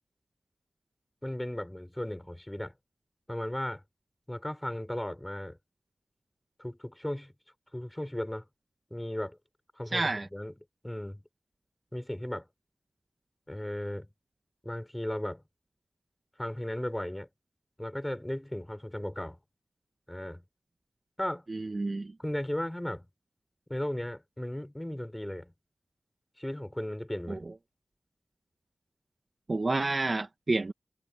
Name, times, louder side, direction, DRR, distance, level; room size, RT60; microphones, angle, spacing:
voice 1, 1.2-2.7 3.3-3.8 4.3-5.6 6.6-7.3 7.7-8.5 8.9-9.4 9.8-10.5 10.8-11.2 11.9-12.5 13.5-14.1 14.6-15.4 16.4-17.3 17.8-19.4 20.1-20.4 21.2-21.4 22.2-23.1 23.7-25.5 26.4-27.4, left 1 dB, 10° left, 5.7 m, -36 dB
voice 2, 9.9-10.3 21.5-22.1 27.3-27.4 29.5-30.7, right 3 dB, 45° right, 1.2 m, -29 dB
wide cardioid pair, 65°, 0 cm